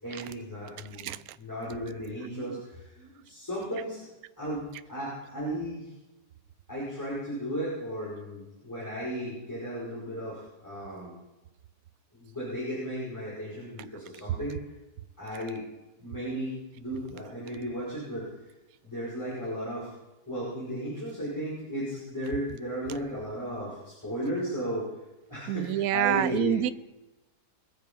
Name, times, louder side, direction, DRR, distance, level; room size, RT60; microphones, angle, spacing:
voice 1, 0.0-1.1 1.4-4.0 4.4-5.9 6.7-11.1 12.1-14.6 15.2-15.6 16.0-18.5 18.8-19.9 20.3-24.9 25.3-26.7, equal, 10° left, -8 dB, 5.5 m, -35 dB
voice 2, 1.0-1.4 2.2-2.6 25.5-26.7, right 12 dB, 70° right, 15 dB, 1.0 m, -28 dB
22.5 x 7.5 x 5.4 m, 1.0 s
omnidirectional pair, 1.8 m